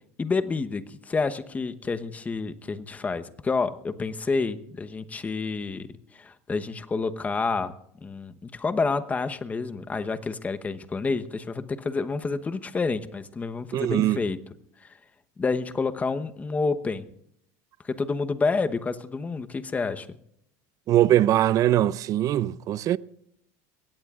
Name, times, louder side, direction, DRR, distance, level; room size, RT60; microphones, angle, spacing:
voice 1, 0.2-5.9 6.1-7.7 8.0-14.4 15.4-17.0 17.8-20.1, left 4 dB, 20° left, 1.0 m, -29 dB
voice 2, 13.7-14.2 20.9-23.0, right 13 dB, 45° right, 0.5 m, -21 dB
21.5 x 17.5 x 2.4 m
supercardioid pair, 125°, 8 cm